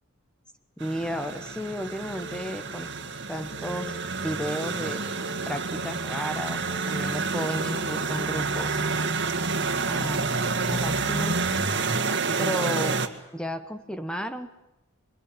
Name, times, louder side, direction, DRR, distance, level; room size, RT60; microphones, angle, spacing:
voice 1, 0.8-2.9 3.3-5.0 5.5-8.8 9.9-10.3 10.7-11.4 12.4-13.0 13.3-14.5, equal, 5° left, 9 dB, 1.2 m, -33 dB
sound 1, 0.8-13.1, right 4 dB, 55° right, 2.2 m, -28 dB
sound 2, 1.8-2.9 3.3-4.4 4.8-5.9 6.3-7.4, right 3 dB, 80° left, 5.9 m, -47 dB
26.5 x 24.0 x 9.1 m, 0.90 s
head